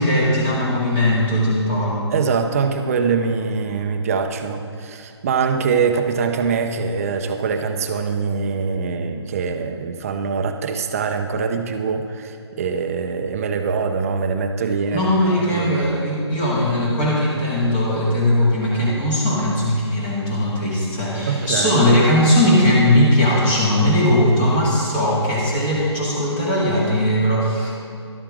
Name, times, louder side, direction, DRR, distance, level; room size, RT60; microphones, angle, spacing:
voice 1, 0.0-2.1 14.9-27.8, left 1 dB, 25° left, -5 dB, 2.2 m, -19 dB
voice 2, 2.1-15.1 15.5-15.8 21.3-21.8, right 5 dB, 30° right, 6 dB, 0.8 m, -23 dB
13.0 x 12.0 x 3.7 m, 2.5 s
figure-of-eight pair, 145°, 15 cm